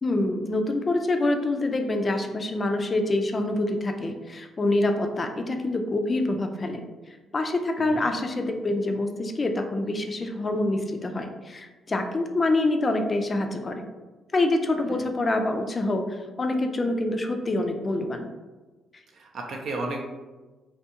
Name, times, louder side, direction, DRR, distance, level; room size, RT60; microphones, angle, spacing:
voice 1, 0.0-6.8 7.3-13.9 14.3-18.3, left 2 dB, 35° left, 5 dB, 0.3 m, -26 dB
voice 2, 19.1-20.1, right 2 dB, 65° right, 1 dB, 0.5 m, -33 dB
2.6 x 2.2 x 2.8 m, 1.2 s
cardioid pair, 75°, 0 cm